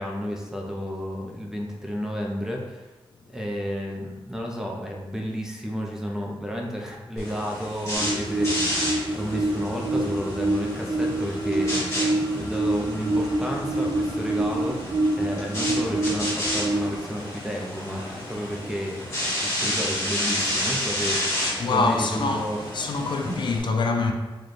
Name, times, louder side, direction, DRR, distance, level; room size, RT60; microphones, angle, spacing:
voice 1, 0.0-2.9 3.3-19.0 19.4-21.2 21.6-22.6, equal, 5° right, 0.4 m, -32 dB
sound 1, 7.2-23.6, left 1 dB, 35° left, 1.4 m, -31 dB
sound 2, 7.9-17.0, right 2 dB, 35° right, 0.9 m, -26 dB
voice 2, 21.6-24.1, left 3 dB, 55° left, 0.3 m, -25 dB
3.2 x 2.2 x 4.0 m
wide cardioid pair, 140°, 9 cm